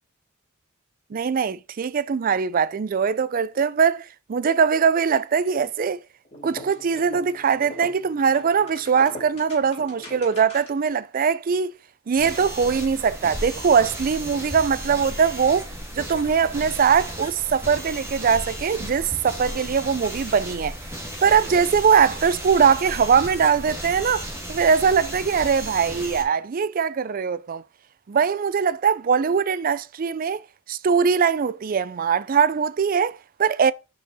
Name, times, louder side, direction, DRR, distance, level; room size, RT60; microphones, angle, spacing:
voice 1, 1.1-6.0 6.4-11.7 12.1-15.7 15.9-20.8 21.2-27.6 28.1-30.4 30.7-33.7, right 6 dB, 45° right, 0.4 m, -21 dB
sound 1, 6.3-10.9, left 1 dB, 35° left, 3.5 m, -41 dB
sound 2, 12.2-26.2, equal, 15° right, 2.2 m, -35 dB
5.9 x 5.7 x 4.1 m
head